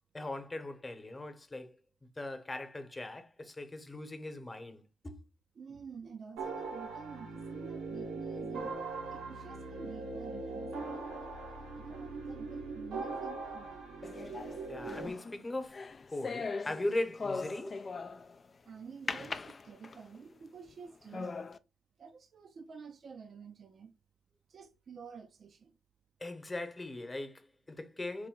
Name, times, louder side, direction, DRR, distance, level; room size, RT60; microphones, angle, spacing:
voice 1, 0.1-1.8 2.2-5.2 14.7-15.8 16.1-17.9 26.2-28.3, left 2 dB, 25° left, 1.0 m, -39 dB
voice 2, 5.6-8.8 9.1-11.1 11.9-14.0 18.7-21.4 22.0-23.9 24.5-25.7, right 6 dB, 55° right, 0.5 m, -49 dB
sound 1, 6.4-15.1, right 3 dB, 85° right, 1.0 m, -40 dB
sound 2, 14.0-18.4 19.1-20.2 20.7-20.8 21.1-21.6, left 4 dB, 40° left, 0.4 m, -40 dB
4.9 x 2.2 x 3.7 m
supercardioid pair, 60°, 0 cm